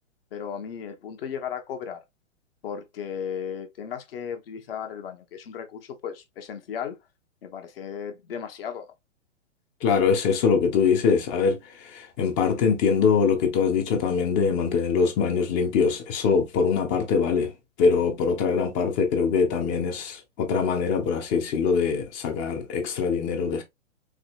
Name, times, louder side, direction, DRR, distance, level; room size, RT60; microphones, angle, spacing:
voice 1, 0.3-2.0 2.6-7.0 7.4-8.9, left 7 dB, 50° left, 1.0 m, -35 dB
voice 2, 9.8-17.5 17.8-23.6, left 5 dB, 25° left, 0.7 m, -23 dB
4.8 x 2.8 x 2.4 m
figure-of-eight pair, 115°, 37 cm